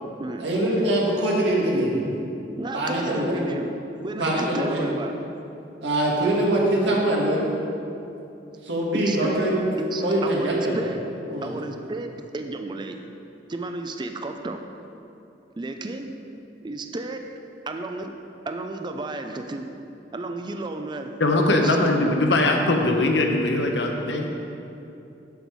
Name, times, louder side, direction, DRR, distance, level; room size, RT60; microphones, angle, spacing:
voice 1, 0.4-2.0 2.7-3.4 4.2-4.8 5.8-7.5 8.6-10.8 11.3-11.5, right 1 dB, 85° right, -3 dB, 1.8 m, -23 dB
voice 2, 2.6-3.7 4.0-5.1 8.9-9.5 9.8-11.0 11.4-13.0 13.5-14.6 15.6-16.1 16.6-17.2 17.7-18.1 18.4-19.7 20.1-21.1 21.5-22.4, right 2 dB, 25° right, 5 dB, 0.4 m, -32 dB
voice 3, 21.2-24.3, left 2 dB, 85° left, 2 dB, 1.0 m, -21 dB
8.1 x 7.1 x 4.6 m, 2.7 s
head